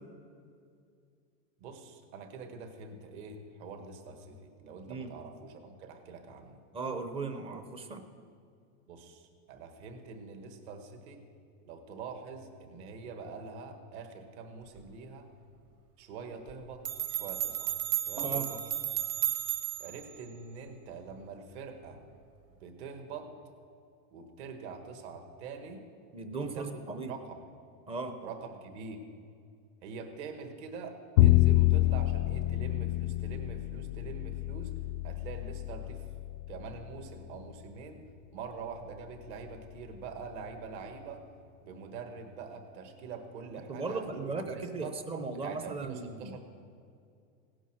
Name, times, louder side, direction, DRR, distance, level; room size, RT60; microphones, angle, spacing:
voice 1, 1.6-6.6 8.9-11.2 11.6-15.3 16.0-17.8 18.1-18.6 19.8-22.0 22.6-23.3 24.1-25.8 26.4-26.7 27.0-27.4 28.2-29.0 29.8-34.7 35.0-36.1 36.5-38.0 38.3-41.3 41.6-44.1 44.4-45.0 45.4-46.4, right 5 dB, 50° right, 5 dB, 1.9 m, -44 dB
voice 2, 6.7-8.0 18.2-18.5 26.1-27.1 27.9-28.2 43.7-46.4, right 3 dB, 15° right, 8 dB, 0.7 m, -37 dB
sound 1, 16.5-16.6 16.8-20.0, right 11 dB, 30° right, 1.2 m, -33 dB
Bowed string instrument, 31.2-37.3, left 16 dB, 55° left, 0.5 m, -28 dB
17.0 x 10.0 x 6.3 m, 2.3 s
supercardioid pair, 160°, 42 cm